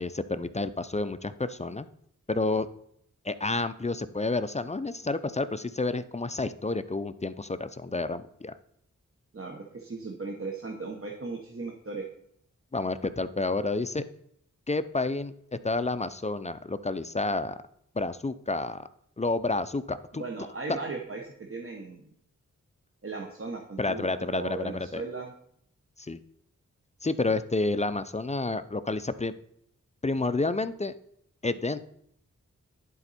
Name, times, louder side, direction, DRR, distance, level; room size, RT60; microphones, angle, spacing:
voice 1, 0.0-1.9 2.3-2.7 3.2-8.5 12.7-14.0 14.7-17.6 17.9-18.9 19.2-20.2 20.7-20.8 23.8-25.0 26.0-26.2 27.0-29.3 30.0-30.9 31.4-31.8, left 3 dB, 20° left, 13 dB, 0.4 m, -30 dB
voice 2, 9.3-12.0 20.2-22.0 23.0-25.3, right 3 dB, 45° right, 1 dB, 1.1 m, -37 dB
11.0 x 4.4 x 4.2 m, 0.69 s
wide cardioid pair, 65°, 32 cm